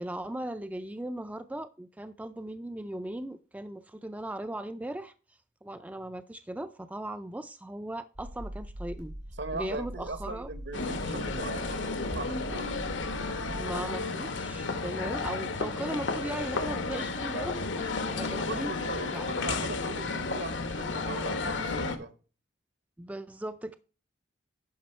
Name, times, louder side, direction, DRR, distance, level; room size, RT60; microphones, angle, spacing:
voice 1, 0.0-5.1 5.6-9.1 9.5-10.5 13.6-18.7 19.1-19.3 23.0-23.8, right 1 dB, 10° right, 0.3 m, -38 dB
sound 1, 8.2-13.9, equal, 90° right, 4.1 m, -42 dB
voice 2, 9.4-12.7 18.2-22.1, right 3 dB, 70° right, 1.1 m, -40 dB
sound 2, 10.7-22.0, left 3 dB, 80° left, 1.1 m, -32 dB
10.5 x 5.4 x 4.4 m
head